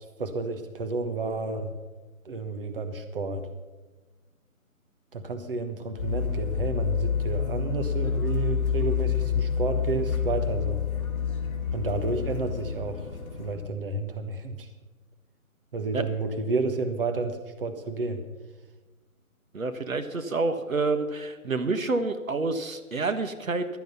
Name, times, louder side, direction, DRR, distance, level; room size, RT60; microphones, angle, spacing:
voice 1, 0.0-1.7 2.2-3.5 5.1-10.8 11.7-13.1 13.4-14.7 15.7-18.2, right 3 dB, 40° right, 7 dB, 1.3 m, -31 dB
sound 1, 6.0-13.6, left 7 dB, 25° left, 2.9 m, -28 dB
voice 2, 19.5-23.7, right 3 dB, 70° right, 9 dB, 1.4 m, -28 dB
15.5 x 12.0 x 5.7 m, 1.3 s
figure-of-eight pair, 160°, 43 cm